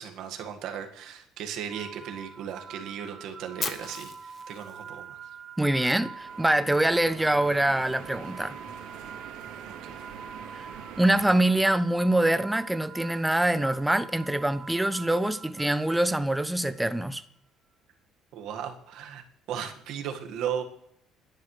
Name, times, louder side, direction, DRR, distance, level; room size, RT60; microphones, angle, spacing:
voice 1, 0.0-5.2 9.7-10.0 18.3-20.6, right 8 dB, 60° right, 1.7 m, -36 dB
sound 1, 1.7-16.8, right 6 dB, 30° right, 0.8 m, -45 dB
Fire, 3.6-5.7, left 5 dB, 25° left, 1.0 m, -37 dB
voice 2, 5.6-8.6 11.0-17.2, right 1 dB, 5° right, 0.5 m, -24 dB
sound 2, 6.1-11.4, right 8 dB, 85° right, 2.8 m, -44 dB
29.5 x 10.5 x 3.3 m
cardioid pair, 175°, 0 cm